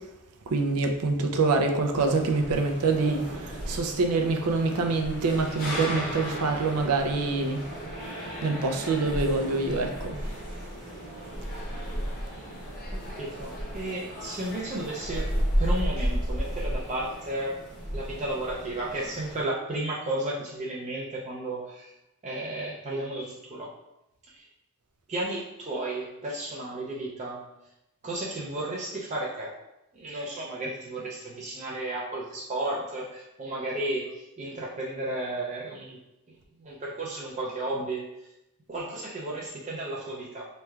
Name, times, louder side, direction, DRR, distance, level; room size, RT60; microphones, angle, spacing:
voice 1, 0.5-7.6 8.4-10.2, right 3 dB, 85° right, 4 dB, 0.5 m, -25 dB
sound 1, 1.9-19.4, equal, 40° left, 0.9 m, -34 dB
voice 2, 12.9-15.3 15.6-17.6 17.9-21.9 22.2-23.7 24.2-24.5 25.1-27.4 28.0-29.5 29.9-36.0 36.3-38.3 38.7-40.5, right 1 dB, 30° right, -4 dB, 0.5 m, -33 dB
4.3 x 3.2 x 2.3 m, 0.90 s
head